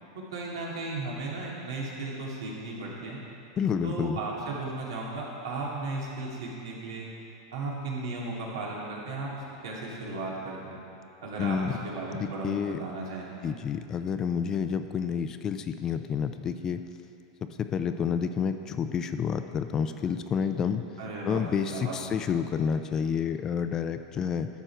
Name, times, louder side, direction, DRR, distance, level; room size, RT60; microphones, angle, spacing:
voice 1, 0.1-3.2 3.8-7.1 7.5-10.8 11.2-13.3 21.0-22.0, right 3 dB, 85° right, -4 dB, 2.4 m, -35 dB
voice 2, 3.6-4.2 11.4-11.8 12.4-12.8 13.4-16.8 17.7-20.8 21.2-24.5, left 7 dB, 25° left, 9 dB, 0.4 m, -29 dB
12.0 x 6.6 x 4.5 m, 2.8 s
supercardioid pair, 135°, 2 cm